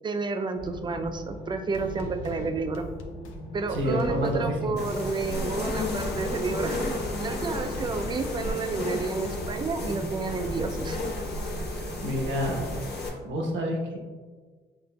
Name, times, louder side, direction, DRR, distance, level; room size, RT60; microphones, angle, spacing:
voice 1, 0.0-2.9 3.5-6.8 7.2-11.0, right 4 dB, 25° right, 7 dB, 0.3 m, -30 dB
sound 1, 0.6-12.9, equal, 25° left, 0.6 m, -40 dB
sound 2, 1.7-9.7, left 2 dB, 85° left, 0.5 m, -42 dB
voice 2, 3.7-4.6 11.7-12.6 13.2-14.0, equal, 70° right, 0 dB, 0.9 m, -28 dB
sound 3, 4.8-13.1, left 2 dB, 55° left, 0.9 m, -33 dB
5.8 x 2.5 x 2.2 m, 1.5 s
cardioid pair, 90°, 20 cm